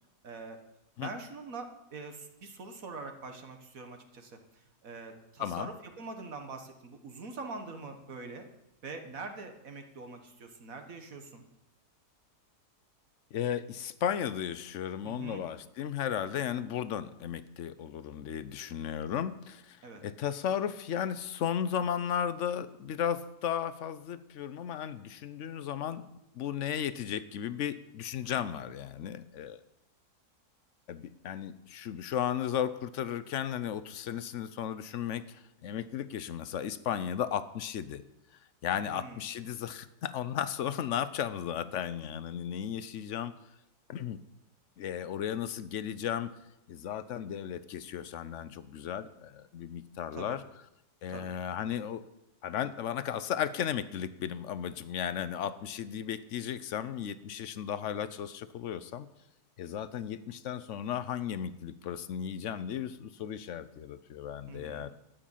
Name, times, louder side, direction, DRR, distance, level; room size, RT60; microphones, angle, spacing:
voice 1, 0.2-0.6 1.0-8.5 8.8-11.4 15.0-15.5 19.8-20.0 38.9-39.3 50.1-50.4 51.1-51.3 64.5-64.9, right 3 dB, 60° right, 5 dB, 1.8 m, -44 dB
voice 2, 5.4-5.7 13.3-19.8 20.0-26.0 26.3-29.6 30.9-38.0 38.6-43.3 43.9-44.2 44.8-46.3 46.7-50.4 51.0-52.0 52.4-59.1 59.6-64.9, left 9 dB, 60° left, 14 dB, 0.9 m, -35 dB
12.5 x 8.8 x 7.3 m, 0.89 s
omnidirectional pair, 1.7 m